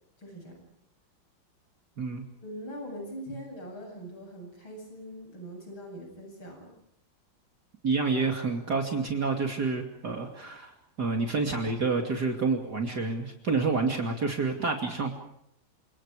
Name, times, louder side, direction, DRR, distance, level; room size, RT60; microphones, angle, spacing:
voice 1, 0.2-0.7 2.4-6.8, equal, 85° left, 2 dB, 9.0 m, -42 dB
voice 2, 7.8-10.7 11.0-15.1, right 4 dB, 50° right, 2 dB, 3.2 m, -28 dB
29.5 x 27.5 x 5.0 m, 0.74 s
omnidirectional pair, 2.2 m